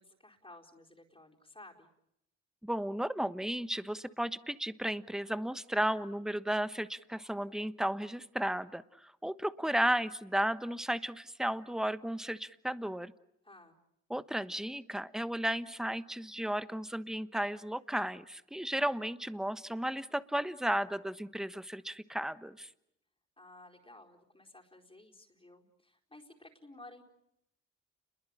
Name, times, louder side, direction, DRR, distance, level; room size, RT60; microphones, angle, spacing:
voice 1, 0.0-1.9 13.4-13.8 23.4-27.0, left 2 dB, 20° left, 1 dB, 4.5 m, -55 dB
voice 2, 2.6-13.1 14.1-22.7, right 1 dB, ahead, 13 dB, 1.2 m, -34 dB
30.0 x 22.0 x 8.8 m, 0.80 s
cardioid pair, 80°, 29 cm